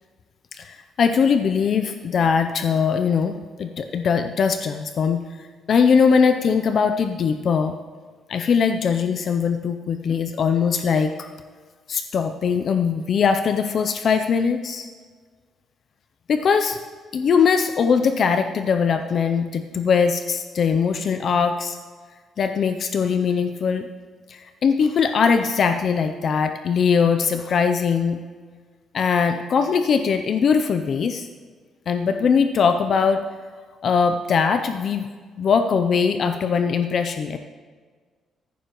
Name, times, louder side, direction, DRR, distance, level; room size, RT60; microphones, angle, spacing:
voice 1, 0.5-7.7 8.3-11.3 11.9-14.9 16.3-16.8 17.1-21.8 22.4-23.9 24.3-28.2 28.9-31.3 31.9-33.2 33.8-35.1 35.4-37.4, left 6 dB, 45° left, 8 dB, 0.4 m, -21 dB
14.5 x 11.0 x 3.0 m, 1.5 s
cardioid pair, 160°, 0 cm